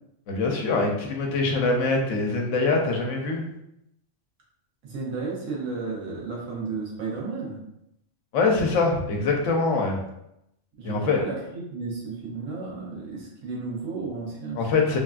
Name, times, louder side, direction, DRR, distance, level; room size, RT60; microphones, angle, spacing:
voice 1, 0.3-3.4 8.3-10.0 10.8-11.2 14.6-15.0, left 3 dB, 80° left, 1 dB, 1.0 m, -23 dB
voice 2, 4.8-7.6 10.8-14.6, right 4 dB, 90° right, -4 dB, 1.3 m, -33 dB
3.2 x 2.4 x 2.2 m, 0.82 s
omnidirectional pair, 1.3 m